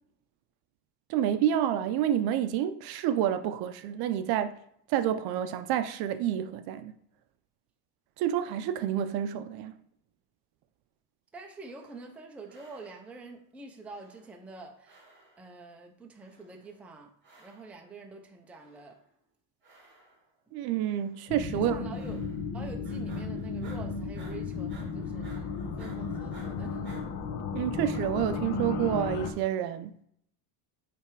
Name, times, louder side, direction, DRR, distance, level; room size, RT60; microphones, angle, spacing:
voice 1, 1.1-4.6 4.9-6.9 8.2-9.7 20.5-21.8 27.5-29.9, right 10 dB, 55° right, 0.6 m, -29 dB
voice 2, 11.3-15.0 15.4-17.1 17.4-19.0 21.5-22.2 22.5-26.9, right 3 dB, 5° right, 0.5 m, -46 dB
sound 1, 11.5-12.2 12.5-13.3 13.8-14.6 14.8-15.6 16.2-16.8 17.2-17.9 18.5-19.1 19.6-20.4 20.8-21.3 21.9-22.6 22.8-27.0, right 2 dB, 25° right, 2.2 m, -56 dB
sound 2, 21.3-29.3, left 4 dB, 60° left, 1.2 m, -34 dB
9.1 x 3.4 x 4.6 m
cardioid pair, 165°, 46 cm